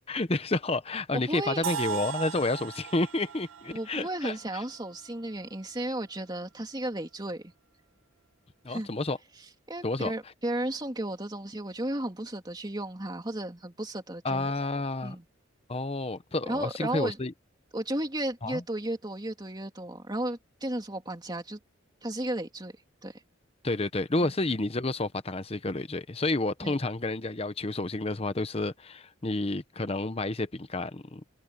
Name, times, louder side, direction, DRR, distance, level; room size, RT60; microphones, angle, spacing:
voice 1, 0.1-4.3 8.6-9.2 9.8-10.1 14.2-15.2 15.7-17.3 18.4-18.6 23.6-31.2, left 2 dB, 30° left, 0.9 m, -30 dB
voice 2, 1.1-1.6 3.7-7.4 8.7-8.9 9.7-14.5 15.0-15.2 16.5-17.2 17.7-21.6 22.0-22.8 23.0-23.2 24.2-24.3 26.6-26.7, right 1 dB, 20° right, 2.7 m, -34 dB
sound 1, 1.6-5.5, right 9 dB, 85° right, 0.7 m, -38 dB
head